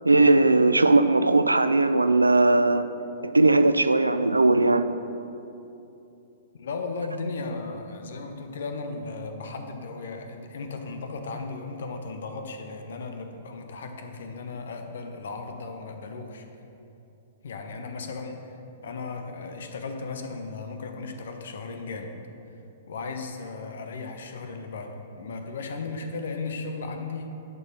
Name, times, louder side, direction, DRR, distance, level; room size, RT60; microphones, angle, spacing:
voice 1, 0.0-2.9 3.2-4.9, right 2 dB, 85° right, 11 dB, 0.4 m, -19 dB
voice 2, 6.5-16.5 17.4-18.6 18.8-22.1 22.9-27.3, left 3 dB, 60° left, 6 dB, 0.9 m, -36 dB
11.0 x 4.7 x 6.0 m, 2.8 s
figure-of-eight pair, 110°, 0 cm